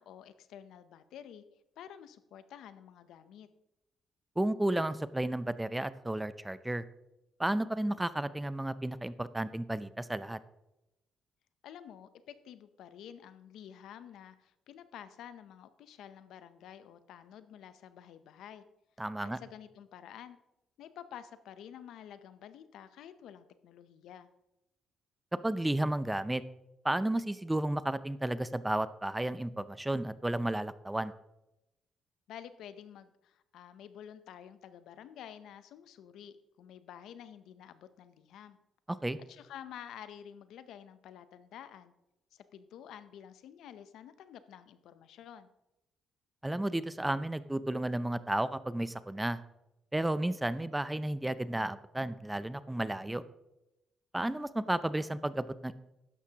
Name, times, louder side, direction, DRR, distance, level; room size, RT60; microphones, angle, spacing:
voice 1, 0.0-1.4 1.8-3.5 11.6-18.6 19.2-20.4 20.8-24.3 32.3-38.6 39.2-41.9 42.3-45.5, left 9 dB, 80° left, 13 dB, 0.6 m, -50 dB
voice 2, 4.4-6.8 7.4-10.4 19.0-19.4 25.3-26.4 26.8-31.1 39.0-39.2 46.4-49.4 49.9-53.2 54.1-55.7, right 1 dB, 10° right, 15 dB, 0.5 m, -32 dB
12.0 x 9.7 x 2.9 m, 0.91 s
cardioid pair, 90°, 0 cm